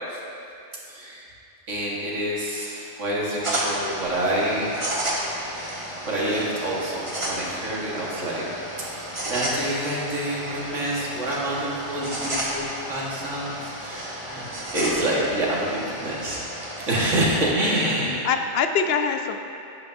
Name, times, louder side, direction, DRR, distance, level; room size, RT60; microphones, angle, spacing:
voice 1, 0.9-1.2 1.7-4.9 5.3-8.5 9.3-16.4 16.9-18.2, right 1 dB, 85° right, -5 dB, 1.9 m, -27 dB
sound 1, 3.4-17.2, right 1 dB, 25° right, 1.3 m, -32 dB
voice 2, 17.7-19.4, left 6 dB, 65° left, 6 dB, 0.7 m, -25 dB
11.5 x 8.6 x 2.6 m, 2.6 s
omnidirectional pair, 1.2 m